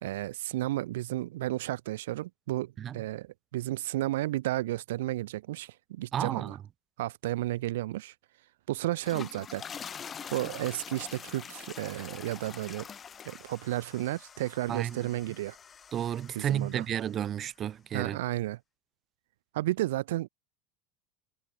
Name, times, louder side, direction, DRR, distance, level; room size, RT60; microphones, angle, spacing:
voice 1, 0.0-6.6 7.0-8.1 8.7-9.6 10.3-12.9 13.2-15.6 16.3-16.8 17.9-18.6 19.5-20.3, right 16 dB, 90° right, 1.4 m, -32 dB
voice 2, 6.1-6.6 14.7-15.0 15.9-18.2, right 10 dB, 30° right, 0.9 m, -32 dB
sound 1, 8.8-17.2, left 7 dB, 25° left, 2.0 m, -45 dB
supercardioid pair, 145°, 0 cm